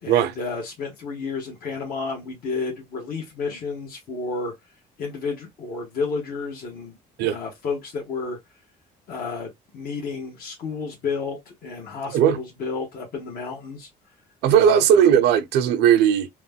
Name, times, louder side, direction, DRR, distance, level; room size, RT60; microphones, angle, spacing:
voice 1, 0.0-4.5 5.0-6.9 7.2-8.4 9.1-13.9 14.5-14.8, left 4 dB, 60° left, 1.2 m, -31 dB
voice 2, 14.4-16.3, right 9 dB, 85° right, 0.6 m, -17 dB
3.0 x 2.1 x 3.5 m
cardioid pair, 110°, 17 cm